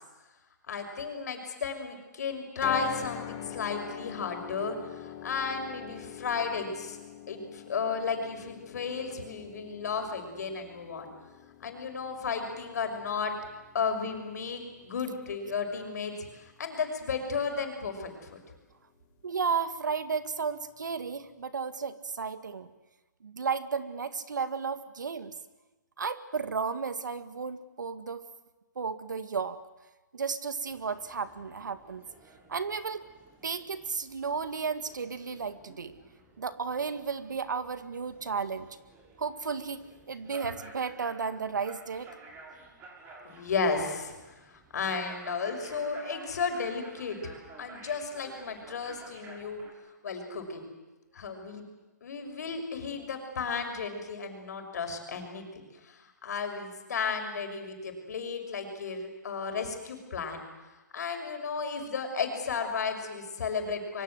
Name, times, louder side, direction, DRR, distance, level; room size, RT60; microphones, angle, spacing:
voice 1, 0.7-7.0 7.3-11.1 11.6-13.3 13.7-18.4 43.2-49.6 50.0-50.7 51.1-51.7 52.0-60.4 60.9-64.0, left 5 dB, 60° left, 4 dB, 6.4 m, -34 dB
sound 1, 2.6-16.7, left 12 dB, 30° left, 1.7 m, -45 dB
voice 2, 19.2-22.7 23.2-25.3 26.0-28.3 28.8-29.6 30.1-32.0 32.5-33.0 33.4-36.0 36.4-38.7 39.2-42.1, right 5 dB, 75° right, 11 dB, 1.9 m, -33 dB
sound 2, 30.7-49.7, right 3 dB, 20° right, 6.6 m, -53 dB
26.0 x 24.0 x 7.9 m, 1.2 s
hypercardioid pair, 135°, 10 cm